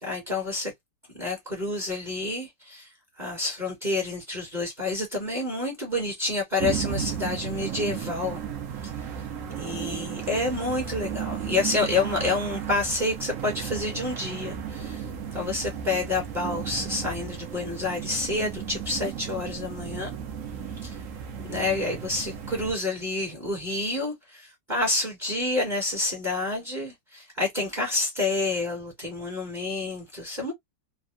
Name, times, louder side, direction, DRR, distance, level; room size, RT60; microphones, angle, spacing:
voice 1, 0.0-0.7 1.2-2.9 3.2-8.4 8.8-8.9 9.6-15.0 15.3-20.1 20.8-21.0 21.4-30.5, left 2 dB, 30° right, 1.0 m, -29 dB
sound 1, 6.6-22.7, right 8 dB, 70° right, 0.8 m, -34 dB
3.4 x 2.2 x 2.5 m
omnidirectional pair, 2.2 m